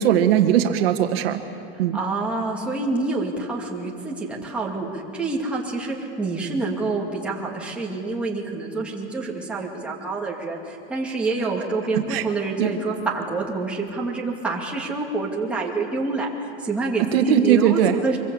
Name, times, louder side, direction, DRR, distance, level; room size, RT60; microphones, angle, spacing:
voice 1, 0.0-1.4 1.8-2.0 11.9-12.2 12.6-12.8 17.0-17.9, right 9 dB, 65° right, 6 dB, 1.6 m, -19 dB
voice 2, 1.8-18.2, right 3 dB, 5° right, -4 dB, 2.4 m, -27 dB
24.5 x 22.5 x 8.5 m, 2.6 s
supercardioid pair, 170°, 32 cm